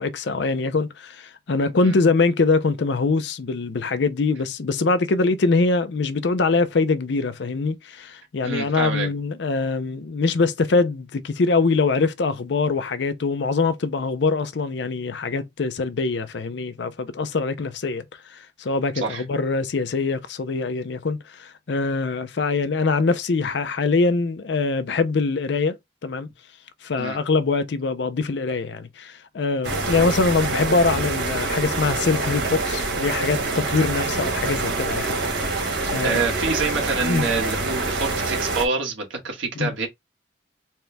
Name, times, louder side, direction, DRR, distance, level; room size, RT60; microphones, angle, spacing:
voice 1, 0.0-18.0 18.3-25.8 26.0-26.3 26.8-35.1 35.4-36.2 37.0-37.3 39.6-39.7, left 3 dB, 65° left, 0.5 m, -23 dB
voice 2, 8.4-9.1 18.9-19.2 27.0-27.2 36.0-39.9, right 4 dB, 90° right, 1.4 m, -26 dB
sound 1, 29.6-38.7, right 3 dB, 65° right, 1.3 m, -26 dB
4.3 x 2.2 x 3.2 m
head